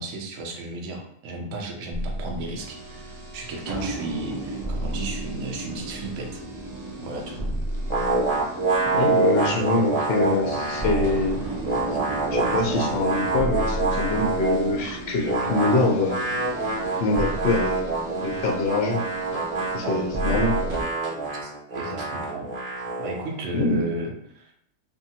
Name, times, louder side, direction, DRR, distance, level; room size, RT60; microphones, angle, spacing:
voice 1, 0.0-6.4 7.0-7.4 21.4-22.5 23.0-24.5, right 1 dB, 65° right, 1 dB, 0.9 m, -34 dB
sound 1, 1.9-20.8, right 1 dB, 90° right, 0.3 m, -33 dB
sound 2, 7.9-11.2 11.4-14.8 15.2-23.3, right 3 dB, 30° right, 0.8 m, -26 dB
voice 2, 8.9-11.4 12.3-16.2 17.0-17.8 18.2-19.0 19.7-20.5 23.5-23.8, left 2 dB, 60° left, 1 dB, 0.7 m, -24 dB
2.7 x 2.6 x 2.7 m, 0.71 s
omnidirectional pair, 1.5 m